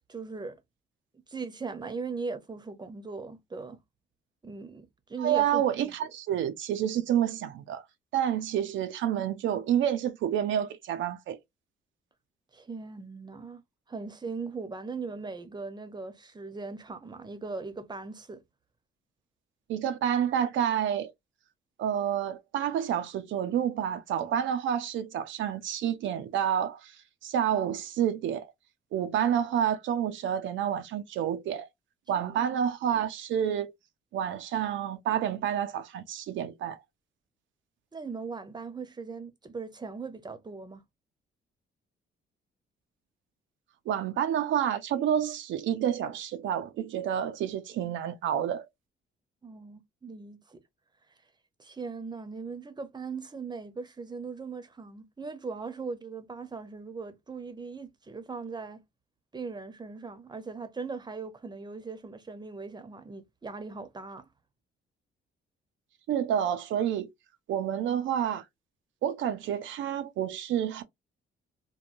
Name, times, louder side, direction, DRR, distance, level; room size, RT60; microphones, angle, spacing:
voice 1, 0.1-0.6 1.1-3.8 4.4-5.6 12.5-13.6 13.9-18.4 32.1-32.4 37.9-40.8 49.4-50.6 51.6-58.8 59.3-64.3, right 4 dB, 20° right, 0.7 m, -39 dB
voice 2, 5.2-7.8 8.1-11.4 19.7-21.1 21.8-27.0 27.2-28.5 28.9-31.7 32.1-33.7 34.1-36.8 43.9-48.7 66.1-67.1 67.5-68.4 69.0-70.8, right 9 dB, 75° right, 0.5 m, -29 dB
3.0 x 2.1 x 2.5 m
cardioid pair, 90°, 20 cm